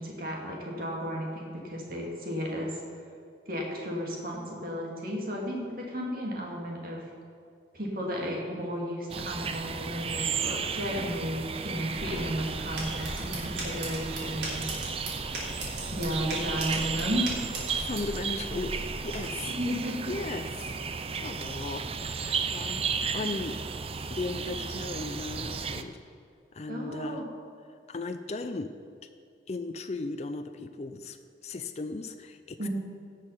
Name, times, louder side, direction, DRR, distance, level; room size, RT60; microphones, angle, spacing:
voice 1, 0.0-2.8 3.5-7.0 7.7-14.8 15.9-17.3 19.5-20.1 26.7-27.2 32.6-32.7, equal, 50° right, -2 dB, 2.5 m, -33 dB
sound 1, 9.1-25.8, right 5 dB, 30° right, 0.5 m, -34 dB
sound 2, 11.9-19.2, right 1 dB, 75° right, 3.6 m, -38 dB
voice 2, 17.7-19.6 20.1-20.8 21.1-23.6 24.1-26.0 26.5-27.2 27.9-28.7 29.5-31.2 31.4-32.7, left 3 dB, 35° left, 8 dB, 0.4 m, -36 dB
17.0 x 6.5 x 5.7 m, 2.4 s
head